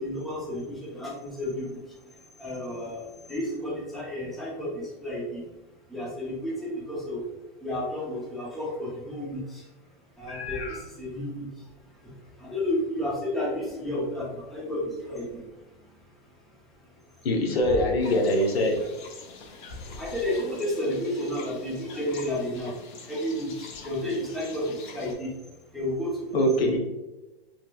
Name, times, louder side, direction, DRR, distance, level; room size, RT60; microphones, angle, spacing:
voice 1, 0.0-5.4 5.9-7.2 7.6-9.7 10.2-16.4 16.7-17.3 19.7-25.4 25.7-26.8, left 1 dB, ahead, -6 dB, 0.6 m, -32 dB
voice 2, 10.3-10.8 17.2-18.8 26.3-26.8, left 1 dB, 90° left, 1 dB, 0.8 m, -24 dB
sound 1, 18.0-25.1, left 4 dB, 55° left, 0.6 m, -46 dB
3.1 x 2.9 x 2.3 m, 1.1 s
hypercardioid pair, 145°, 29 cm